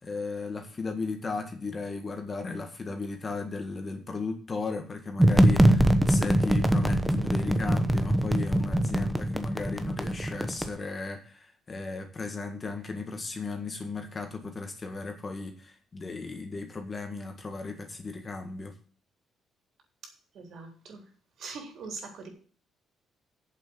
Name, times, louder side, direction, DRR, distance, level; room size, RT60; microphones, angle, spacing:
voice 1, 0.0-18.7, left 3 dB, 25° left, 1.8 m, -36 dB
sound 1, 5.2-10.7, right 1 dB, 5° right, 0.9 m, -23 dB
voice 2, 20.3-21.0 21.4-22.3, right 4 dB, 55° right, 3.7 m, -41 dB
8.5 x 7.4 x 8.0 m
cardioid pair, 160°, 0 cm